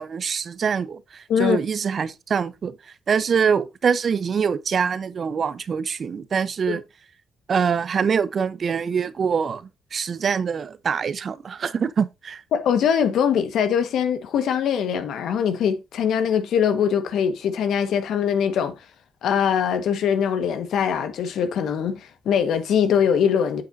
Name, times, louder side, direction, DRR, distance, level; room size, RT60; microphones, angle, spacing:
voice 1, 0.0-2.8 3.1-6.8 7.5-12.4, right 6 dB, 55° right, 0.9 m, -24 dB
voice 2, 12.5-18.7 19.2-23.6, left 8 dB, 75° left, 1.6 m, -22 dB
8.8 x 7.7 x 2.8 m
cardioid pair, 70°, 0 cm